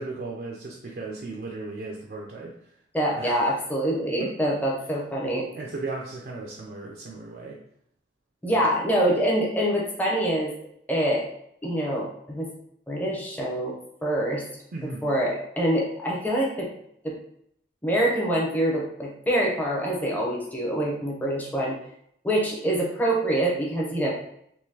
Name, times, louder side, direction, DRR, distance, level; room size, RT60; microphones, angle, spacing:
voice 1, 0.0-2.5 3.1-3.5 4.2-4.3 5.5-7.6 8.5-8.8 14.7-15.1, right 3 dB, 55° right, -2 dB, 0.4 m, -36 dB
voice 2, 2.9-5.5 8.4-10.5 10.9-11.2 11.6-12.5 12.9-13.7 14.0-14.4 15.0-16.7 17.0-17.1 17.8-21.8 22.2-24.1, right 1 dB, 10° left, -3 dB, 0.6 m, -25 dB
3.7 x 2.7 x 2.8 m, 0.72 s
head